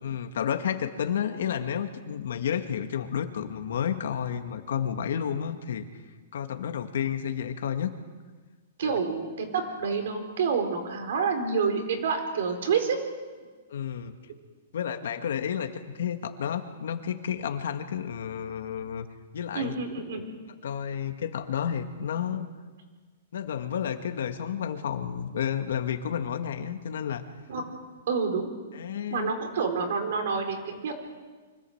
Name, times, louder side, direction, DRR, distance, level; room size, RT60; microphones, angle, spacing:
voice 1, 0.0-5.9 6.3-7.9 8.8-9.0 13.7-14.1 14.7-19.1 19.3-19.7 20.6-22.5 23.3-27.2 28.7-29.3, left 8 dB, 75° left, 7 dB, 1.8 m, -31 dB
voice 2, 8.8-13.0 19.5-20.3 27.5-27.6 28.1-28.5 29.1-31.0, right 5 dB, 65° right, 5 dB, 4.1 m, -28 dB
24.5 x 15.0 x 8.0 m, 1.4 s
hypercardioid pair, 165°, 0 cm